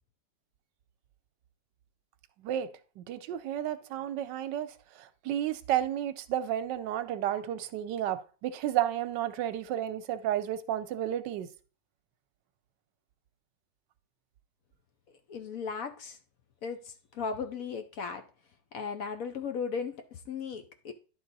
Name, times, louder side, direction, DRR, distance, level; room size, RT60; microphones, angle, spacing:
voice 1, 3.0-4.7 5.0-11.5, right 11 dB, 85° right, 1.3 m, -32 dB
voice 2, 15.3-16.2 16.6-18.2 18.7-20.9, left 5 dB, 65° left, 0.9 m, -36 dB
10.5 x 4.0 x 3.9 m
omnidirectional pair, 1.9 m